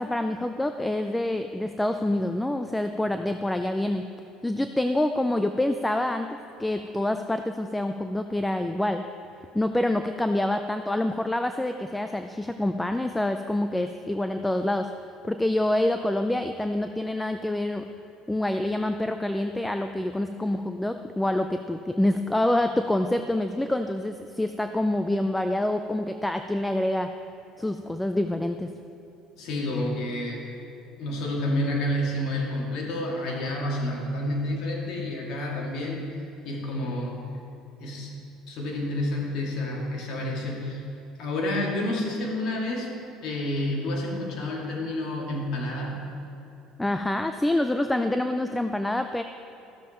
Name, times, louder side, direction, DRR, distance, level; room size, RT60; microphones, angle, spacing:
voice 1, 0.0-4.0 4.4-6.3 6.6-9.0 9.5-14.9 15.2-17.8 18.3-27.1 27.6-28.7 46.8-49.2, left 1 dB, 5° left, 7 dB, 0.4 m, -26 dB
voice 2, 29.4-30.5 31.0-36.0 36.4-37.2 37.8-38.1 38.5-40.8 41.2-42.9 43.2-46.0, left 1 dB, 60° left, -2 dB, 2.4 m, -29 dB
13.5 x 7.1 x 4.4 m, 2.9 s
supercardioid pair, 115°, 0 cm